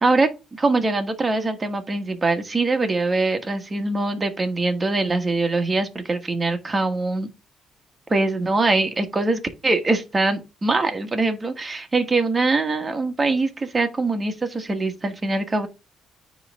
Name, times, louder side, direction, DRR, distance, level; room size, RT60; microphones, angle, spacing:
voice 1, 0.0-7.3 8.1-15.7, right 3 dB, 25° right, 1.4 m, -23 dB
9.5 x 3.2 x 3.5 m
cardioid pair, 90°, 0 cm